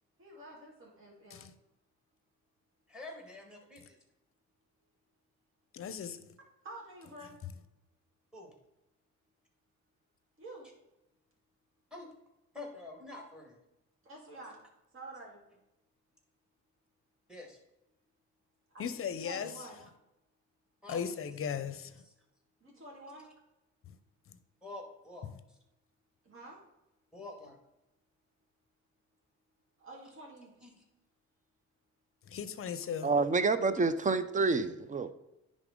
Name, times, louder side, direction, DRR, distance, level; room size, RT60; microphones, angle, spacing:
voice 1, 0.2-1.5 6.6-7.4 10.4-10.7 14.0-14.6 14.9-15.4 18.7-19.8 22.6-23.3 26.2-26.6 29.8-30.7, right 2 dB, 45° right, 2.3 m, -49 dB
voice 2, 2.9-4.0 8.3-8.5 11.9-12.1 12.5-13.6 17.3-17.6 19.3-19.5 20.8-21.3 22.0-22.1 24.6-25.3 27.1-27.6 30.6-30.8, left 2 dB, 5° right, 2.0 m, -47 dB
voice 3, 5.7-6.2 18.8-19.5 20.9-21.9 32.3-33.1, left 7 dB, 45° left, 0.6 m, -37 dB
voice 4, 33.0-35.1, right 3 dB, 25° right, 0.5 m, -28 dB
10.0 x 3.8 x 3.8 m
cardioid pair, 90°, 30 cm